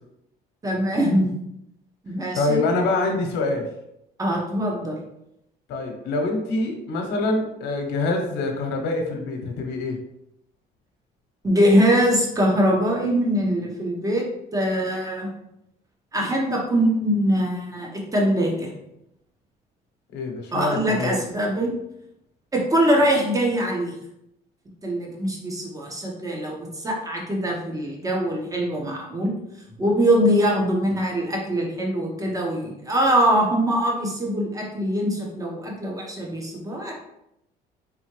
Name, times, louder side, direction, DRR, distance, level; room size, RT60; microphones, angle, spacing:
voice 1, 0.6-1.3 2.0-2.6 4.2-4.9 11.4-14.2 14.5-15.3 16.1-18.7 20.5-21.7 22.5-23.9 24.8-29.3 29.8-36.9, equal, 20° right, -1 dB, 1.2 m, -22 dB
voice 2, 2.3-3.7 5.7-10.0 20.1-21.2, left 2 dB, 85° left, 3 dB, 1.0 m, -25 dB
4.1 x 3.7 x 3.2 m, 0.81 s
cardioid pair, 110°, 17 cm